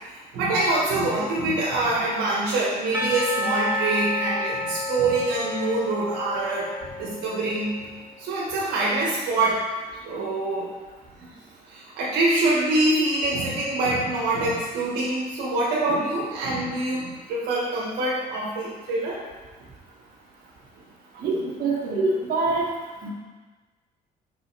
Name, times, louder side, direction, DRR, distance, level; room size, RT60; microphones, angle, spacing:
voice 1, 0.1-6.7 7.0-7.8 8.2-9.6 10.0-10.7 11.2-11.3 11.7-19.2, right 2 dB, 85° right, -6 dB, 1.6 m, -25 dB
Percussion / Church bell, 2.9-7.7, left 1 dB, 10° right, 1.2 m, -30 dB
voice 2, 21.2-22.7 23.0-23.1, right 3 dB, 60° right, -5 dB, 2.3 m, -24 dB
6.8 x 5.4 x 4.1 m, 1.3 s
cardioid pair, 110°, 17 cm